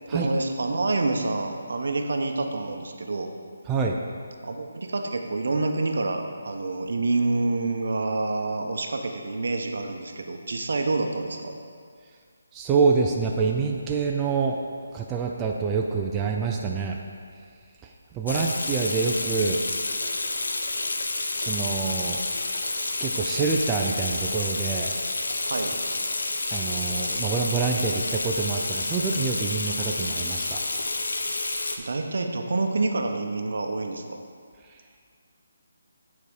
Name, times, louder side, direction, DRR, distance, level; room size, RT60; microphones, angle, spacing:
voice 1, 0.1-3.3 4.4-11.6 25.5-25.7 31.8-34.2, right 3 dB, 65° right, 4 dB, 0.8 m, -27 dB
voice 2, 3.7-4.0 12.5-14.6 14.9-17.0 18.1-19.6 21.4-22.2 23.0-24.9 26.5-30.6, right 5 dB, 10° right, 0 dB, 0.3 m, -26 dB
Water tap faucet / Sink (filling or washing), 18.3-31.8, left 2 dB, 80° left, 0.7 m, -29 dB
9.0 x 4.2 x 4.8 m, 2.1 s
hypercardioid pair, 170°, 0 cm